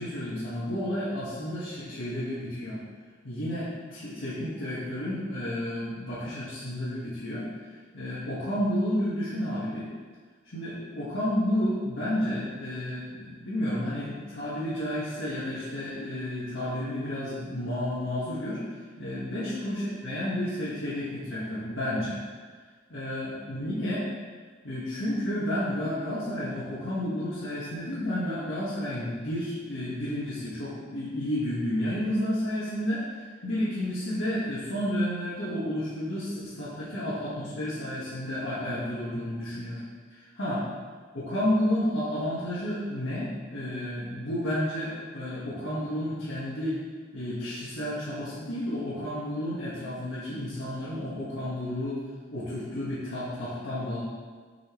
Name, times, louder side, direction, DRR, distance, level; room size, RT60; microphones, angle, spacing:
voice 1, 0.0-2.8 3.2-9.9 10.4-22.2 22.9-24.0 24.6-39.8 40.1-40.6 41.1-46.8 47.1-52.0 52.3-54.0, left 1 dB, 85° left, -10 dB, 1.7 m, -31 dB
6.8 x 6.1 x 3.2 m, 1.5 s
head